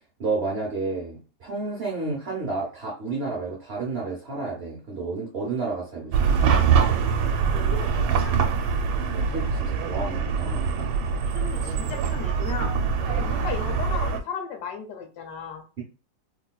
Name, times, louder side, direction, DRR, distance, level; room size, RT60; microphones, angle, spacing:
voice 1, 0.2-6.3 9.0-10.8 13.1-13.3, right 3 dB, 55° right, -2 dB, 0.7 m, -31 dB
Chatter / Car passing by / Traffic noise roadway noise, 6.1-14.2, right 6 dB, 85° right, 1.4 m, -24 dB
voice 2, 7.5-8.3 11.2-12.7 13.1-15.6, left 6 dB, 70° left, 4 dB, 1.1 m, -36 dB
3.9 x 2.4 x 2.2 m, 0.33 s
omnidirectional pair, 2.1 m